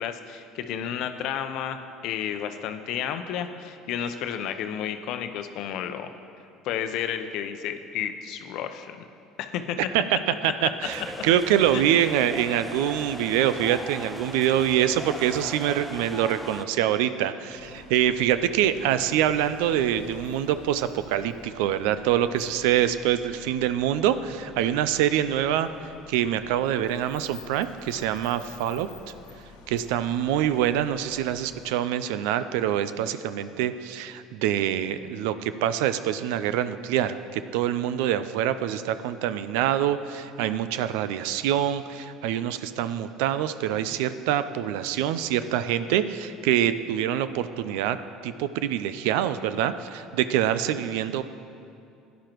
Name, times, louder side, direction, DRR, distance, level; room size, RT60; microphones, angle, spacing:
voice 1, 0.0-6.1 6.6-9.0 9.4-9.8 10.4-10.5 11.7-11.8, left 9 dB, 65° left, 8 dB, 0.7 m, -32 dB
voice 2, 10.4-28.9 29.7-48.0 48.2-51.2, right 10 dB, 75° right, 12 dB, 0.4 m, -25 dB
sound 1, 10.8-16.6, equal, ahead, 0.7 m, -38 dB
sound 2, 17.5-31.7, left 5 dB, 80° left, 1.1 m, -49 dB
16.0 x 10.5 x 3.0 m, 2.5 s
hypercardioid pair, 70°, 0 cm